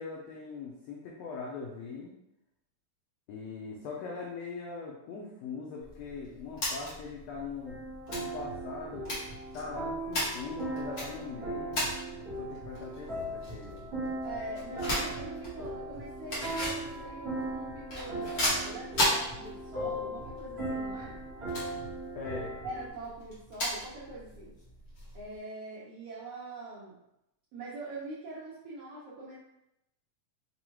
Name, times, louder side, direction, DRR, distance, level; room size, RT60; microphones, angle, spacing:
voice 1, 0.0-2.1 3.3-7.8 8.1-9.2 9.5-11.9 12.2-13.9 22.1-22.5, left 4 dB, 85° left, -2 dB, 1.5 m, -41 dB
sound 1, 5.8-25.3, left 1 dB, 50° left, 1.0 m, -37 dB
sound 2, 7.6-22.9, right 1 dB, 50° right, 0.7 m, -38 dB
voice 2, 14.2-21.2 22.6-24.5 25.1-27.0 27.5-29.4, right 2 dB, 75° right, -7 dB, 1.4 m, -43 dB
5.3 x 2.3 x 3.0 m, 0.84 s
omnidirectional pair, 3.6 m